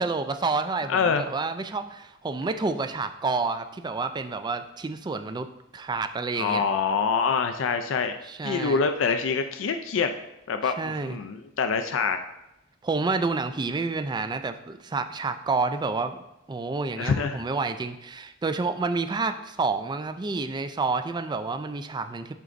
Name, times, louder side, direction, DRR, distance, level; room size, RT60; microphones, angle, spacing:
voice 1, 0.0-5.5 5.7-6.6 8.2-8.8 10.8-11.2 12.8-16.2 16.5-22.3, right 3 dB, 20° right, 9 dB, 0.4 m, -29 dB
voice 2, 0.9-1.2 6.4-8.1 8.4-10.1 10.5-12.2 17.0-17.4, left 5 dB, 70° left, 7 dB, 0.4 m, -25 dB
11.0 x 3.9 x 2.5 m, 0.89 s
head